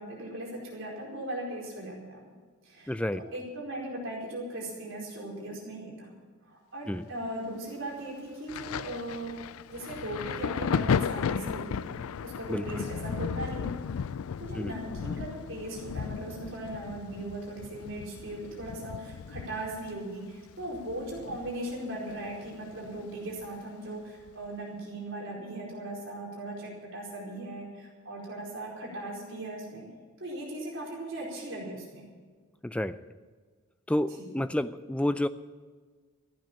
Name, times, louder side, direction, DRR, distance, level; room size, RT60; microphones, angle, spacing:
voice 1, 0.0-2.3 2.6-6.1 6.4-9.3 9.7-13.7 14.4-29.9 30.2-32.0 34.2-34.3, right 1 dB, 60° right, -3 dB, 4.7 m, -38 dB
voice 2, 2.9-3.2 6.9-7.1 12.5-12.9 14.6-14.7 32.6-33.0 33.9-35.3, left 1 dB, 5° left, 13 dB, 0.4 m, -30 dB
Thunder, 8.5-21.8 22.1-23.5 24.3-24.5, left 6 dB, 80° left, 0.4 m, -35 dB
14.5 x 9.4 x 8.8 m, 1.5 s
head